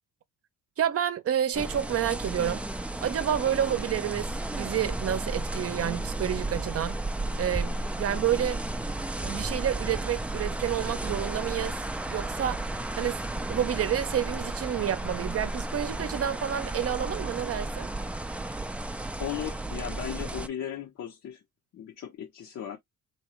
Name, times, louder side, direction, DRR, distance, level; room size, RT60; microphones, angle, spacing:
voice 1, 0.8-2.6 3.0-7.0 7.4-8.6 9.2-11.7 12.1-12.6 13.0-17.9, right 10 dB, 50° right, 0.7 m, -29 dB
sound 1, 1.5-20.5, right 2 dB, 5° right, 0.4 m, -33 dB
voice 2, 19.2-21.4 21.7-22.8, left 9 dB, 60° left, 0.8 m, -36 dB
3.3 x 2.9 x 3.0 m
cardioid pair, 90°, 30 cm